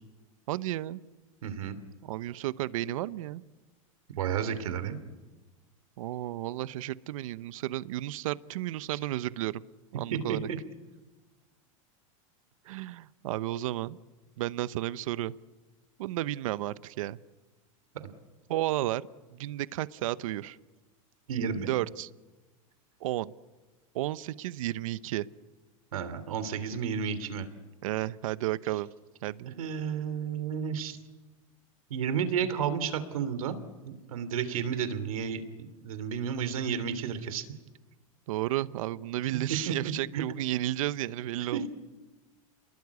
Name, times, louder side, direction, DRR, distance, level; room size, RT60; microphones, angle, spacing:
voice 1, 0.5-1.0 2.0-3.4 6.0-9.6 9.9-10.5 12.7-14.0 14.4-15.3 16.0-17.2 18.5-19.0 19.3-20.6 21.7-22.1 23.0-23.3 23.9-25.3 27.8-28.9 29.2-29.5 38.3-41.7, right 15 dB, 75° right, 16 dB, 0.9 m, -32 dB
voice 2, 1.4-1.8 4.2-5.0 10.1-10.6 21.3-21.7 25.9-27.5 29.5-31.0 31.9-33.5 33.9-37.4 39.7-40.2 41.5-41.7, right 7 dB, 90° right, 12 dB, 3.0 m, -32 dB
29.5 x 22.0 x 8.3 m, 1.2 s
supercardioid pair, 135°, 17 cm